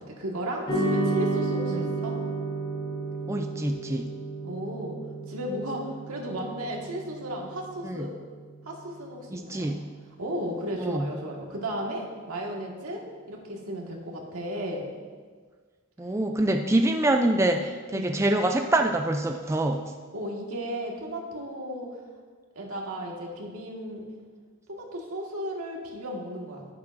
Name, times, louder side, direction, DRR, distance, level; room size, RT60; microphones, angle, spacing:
voice 1, 0.0-2.2 4.4-5.0 5.3-8.2 8.6-9.7 10.2-14.9 17.9-18.1 20.1-22.0 22.5-24.0 24.7-26.7, right 1 dB, 90° right, -1 dB, 1.7 m, -34 dB
sound 1, 0.7-9.2, right 2 dB, 25° left, 2.8 m, -32 dB
voice 2, 3.3-4.1 7.8-8.1 9.3-9.8 10.8-11.1 16.0-19.9, right 1 dB, 15° right, 4 dB, 0.3 m, -25 dB
10.5 x 10.5 x 2.6 m, 1.5 s
head